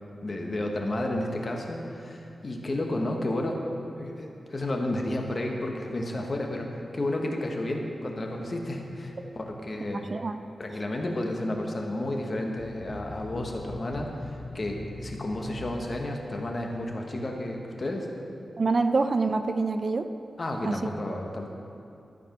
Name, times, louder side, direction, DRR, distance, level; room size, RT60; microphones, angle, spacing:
voice 1, 0.2-3.6 4.0-10.1 10.6-18.1 20.4-21.5, left 1 dB, 35° left, 1 dB, 1.1 m, -32 dB
voice 2, 10.0-10.3 18.6-20.1 20.6-20.8, right 3 dB, 45° right, 9 dB, 0.3 m, -25 dB
sound 1, 12.6-17.3, left 2 dB, 20° left, 1.6 m, -42 dB
12.5 x 4.8 x 5.9 m, 2.6 s
wide cardioid pair, 110°, 0 cm